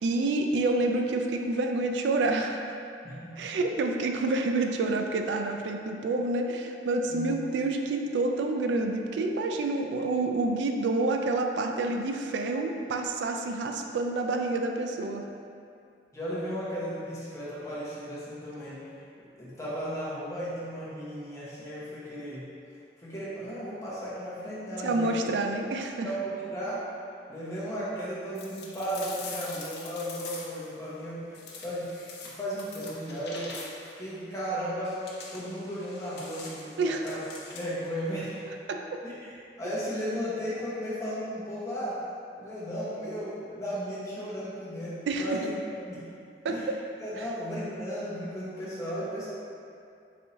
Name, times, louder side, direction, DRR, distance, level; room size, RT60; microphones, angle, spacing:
voice 1, 0.0-2.8 3.4-15.2 24.8-26.1 36.8-37.0 38.7-39.0 45.1-45.2 46.4-46.6 47.2-47.3, right 2 dB, 90° right, 4 dB, 0.3 m, -28 dB
voice 2, 3.0-3.6 7.1-7.3 16.1-22.4 23.0-25.3 26.0-27.0 27.3-31.9 32.2-33.5 34.0-35.0 35.3-37.2 37.5-38.3 39.0-42.0 42.4-45.5 45.8-46.0 46.5-46.7 47.0-49.3, equal, 20° left, -9 dB, 0.9 m, -35 dB
sound 1, 28.3-30.7 31.3-34.0 34.8-37.9, left 3 dB, 75° left, 0.6 m, -44 dB
4.1 x 3.5 x 2.8 m, 2.4 s
head